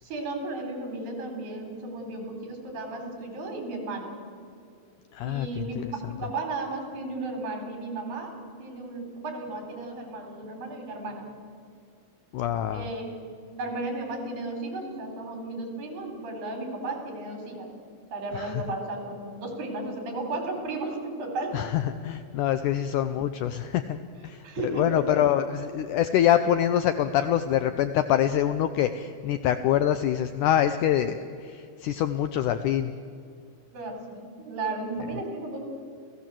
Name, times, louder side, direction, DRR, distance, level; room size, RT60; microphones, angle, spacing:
voice 1, 0.0-4.2 5.2-11.3 12.7-17.7 18.1-21.6 24.4-25.2 33.7-35.6, right 2 dB, 75° right, 4 dB, 5.5 m, -34 dB
voice 2, 5.1-5.9 12.3-12.9 18.3-18.6 21.5-32.9, left 11 dB, 75° left, 10 dB, 1.9 m, -25 dB
29.5 x 16.0 x 7.5 m, 2.3 s
omnidirectional pair, 4.1 m